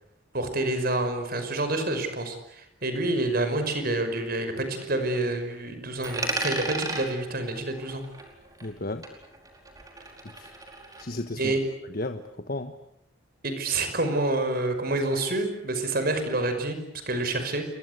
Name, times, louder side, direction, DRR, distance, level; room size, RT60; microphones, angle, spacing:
voice 1, 0.3-8.0 11.4-11.6 13.4-16.8 17.1-17.7, right 2 dB, 50° right, 8 dB, 5.6 m, -28 dB
Coin (dropping), 6.0-8.8 9.0-11.0, right 2 dB, 20° right, 4.9 m, -35 dB
voice 2, 8.6-9.1 10.2-10.5 11.0-11.5 11.9-12.7, left 2 dB, 45° left, 7 dB, 1.4 m, -34 dB
29.5 x 24.0 x 8.2 m, 0.77 s
head